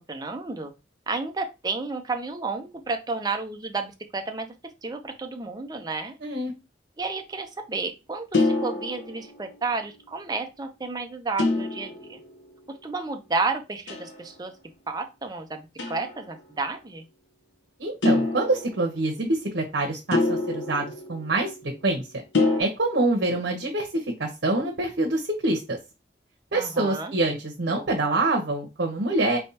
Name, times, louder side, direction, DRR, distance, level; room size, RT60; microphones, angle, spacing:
voice 1, 0.1-0.7 1.1-4.5 4.8-6.1 7.0-12.2 12.8-14.5 14.9-17.0 26.5-27.1, right 3 dB, 20° right, 5 dB, 0.5 m, -31 dB
voice 2, 6.2-6.5 17.8-22.1 22.6-25.8 26.5-29.4, right 2 dB, 75° right, 0 dB, 0.9 m, -26 dB
sound 1, 8.3-9.7 11.4-12.5 13.9-14.3 15.8-16.3 18.0-19.1 20.1-21.8 22.3-22.6, left 3 dB, 85° left, 0.8 m, -26 dB
4.3 x 3.4 x 2.8 m, 0.26 s
head